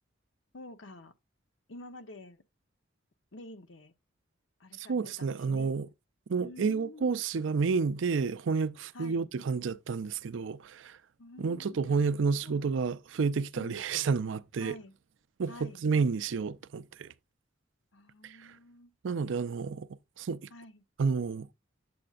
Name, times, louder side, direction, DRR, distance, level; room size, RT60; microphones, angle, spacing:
voice 1, 0.5-1.1 1.7-2.4 3.3-3.9 4.6-5.7 6.4-7.2 8.9-9.3 11.2-12.8 13.6-13.8 14.6-14.9 15.5-15.8 17.9-18.9 20.5-20.8, left 2 dB, 70° left, 0.9 m, -49 dB
voice 2, 4.8-5.9 6.3-11.0 11.4-14.8 15.4-17.1 18.2-18.4 19.0-19.9 20.2-20.4 21.0-21.5, right 5 dB, 70° right, 0.4 m, -30 dB
8.5 x 7.8 x 2.4 m
head